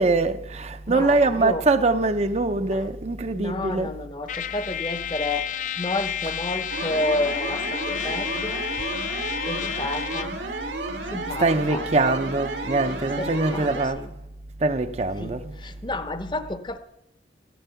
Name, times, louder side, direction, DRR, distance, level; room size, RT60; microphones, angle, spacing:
voice 1, 0.0-3.9 11.4-14.0 14.6-15.5, right 3 dB, 35° right, 0.6 m, -23 dB
voice 2, 0.9-1.7 2.6-2.8 3.3-8.6 9.1-10.4 11.1-12.2 13.2-14.1 15.2-16.8, left 2 dB, 25° left, 0.8 m, -31 dB
Trumpet, 4.3-10.4, left 10 dB, 45° left, 0.4 m, -31 dB
sound 1, 6.7-13.9, right 2 dB, 85° right, 2.1 m, -32 dB
15.0 x 12.5 x 5.7 m
head